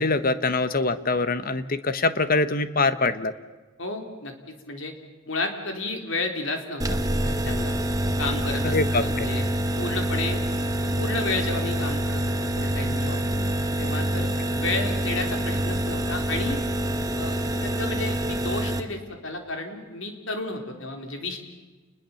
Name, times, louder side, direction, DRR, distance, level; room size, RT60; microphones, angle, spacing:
voice 1, 0.0-3.3 8.6-9.3, left 3 dB, 45° left, 12 dB, 1.3 m, -24 dB
voice 2, 3.8-4.3 4.7-4.9 5.3-7.7 8.2-10.4 10.8-13.2 13.8-16.7 17.1-21.4, left 2 dB, 65° left, 4 dB, 4.0 m, -32 dB
sound 1, 6.8-18.8, right 1 dB, 15° right, 1.6 m, -26 dB
30.0 x 21.0 x 7.2 m, 1.3 s
head